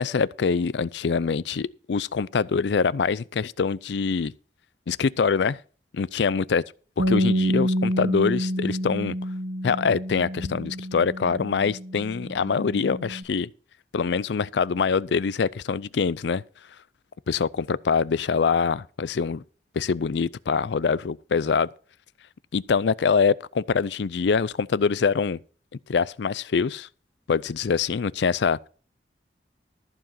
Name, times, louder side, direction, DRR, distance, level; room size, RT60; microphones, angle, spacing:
voice 1, 0.0-4.3 4.9-5.6 5.9-6.6 7.0-9.1 9.6-13.5 13.9-16.4 17.3-19.4 19.8-21.7 22.5-25.4 25.9-26.9 27.3-28.7, left 5 dB, 75° left, 0.4 m, -24 dB
Bass guitar, 7.0-13.2, equal, 70° right, 1.4 m, -28 dB
14.0 x 4.8 x 7.4 m
head